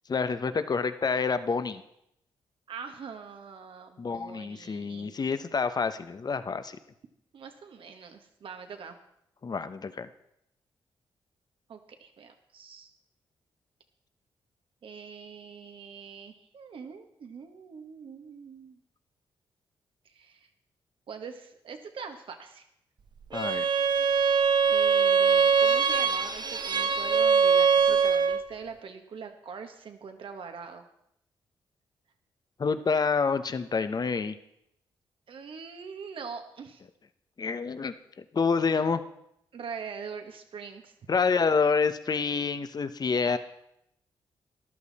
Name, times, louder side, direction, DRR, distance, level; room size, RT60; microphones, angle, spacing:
voice 1, 0.1-1.8 4.0-6.8 9.4-10.1 23.3-23.7 32.6-34.3 37.4-39.0 41.1-43.4, left 5 dB, 45° left, 11 dB, 1.0 m, -28 dB
voice 2, 2.7-5.1 7.3-9.0 11.7-12.9 14.8-18.8 20.0-20.5 21.1-22.6 24.6-30.9 35.3-36.8 39.5-40.9 43.1-43.4, right 6 dB, 65° right, 6 dB, 1.6 m, -43 dB
Bowed string instrument, 23.3-28.5, right 6 dB, 50° right, 1.0 m, -23 dB
13.5 x 11.5 x 4.2 m, 0.78 s
supercardioid pair, 55°, 9 cm